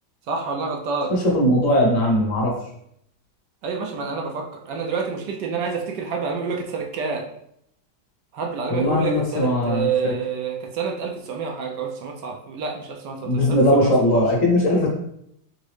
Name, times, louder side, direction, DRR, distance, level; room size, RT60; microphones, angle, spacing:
voice 1, 0.3-1.1 3.6-7.2 8.3-14.3, right 5 dB, 70° right, 1 dB, 1.1 m, -28 dB
voice 2, 1.3-2.5 8.7-10.1 13.2-14.9, left 1 dB, 50° left, -1 dB, 1.1 m, -19 dB
4.0 x 3.6 x 3.2 m, 0.73 s
omnidirectional pair, 2.2 m